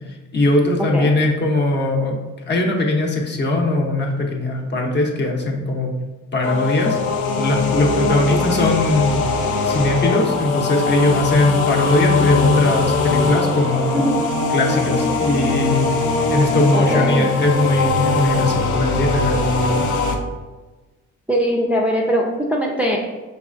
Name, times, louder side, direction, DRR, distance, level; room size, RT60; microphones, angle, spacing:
voice 1, 0.0-2.2 2.5-5.9 6.3-14.1 14.5-19.8, left 2 dB, 35° left, 0 dB, 0.8 m, -20 dB
sound 1, 6.4-20.2, left 3 dB, 75° left, 0.6 m, -21 dB
voice 2, 8.1-8.5 13.9-14.2 16.7-17.3 21.3-23.0, equal, 5° right, -1 dB, 0.5 m, -21 dB
4.9 x 3.2 x 2.5 m, 1.2 s
cardioid pair, 90°, 30 cm